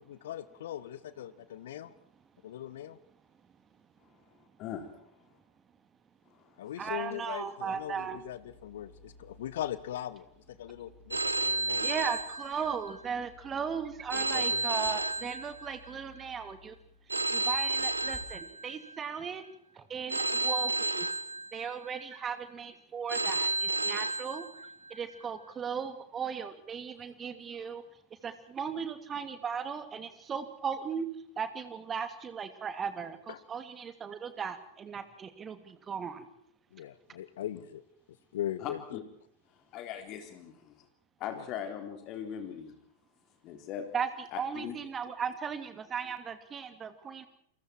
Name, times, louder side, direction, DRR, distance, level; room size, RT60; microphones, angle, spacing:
voice 1, 0.1-1.9 2.4-3.0 6.6-10.3 10.6-11.9 14.1-14.6 33.3-33.4 36.7-37.8 38.3-39.0 41.3-41.4, left 12 dB, 60° left, 16 dB, 1.5 m, -40 dB
voice 2, 6.8-8.2 11.8-16.8 17.3-19.4 19.8-21.1 21.5-24.5 24.9-27.8 28.2-31.1 31.4-36.3 43.9-44.1 44.4-47.3, right 6 dB, 20° right, 10 dB, 2.8 m, -37 dB
sound 1, 7.6-18.2, left 1 dB, 5° left, 7.0 m, -57 dB
Telephone, 11.1-13.0 14.1-16.0 17.1-19.0 20.1-22.0 23.1-25.0, right 2 dB, 80° right, 1.4 m, -32 dB
voice 3, 38.6-39.0 39.7-40.7 41.2-42.7 43.4-43.9 44.3-44.8, left 9 dB, 40° left, 6 dB, 3.8 m, -39 dB
29.5 x 23.5 x 4.6 m, 0.70 s
figure-of-eight pair, 90°, 0 cm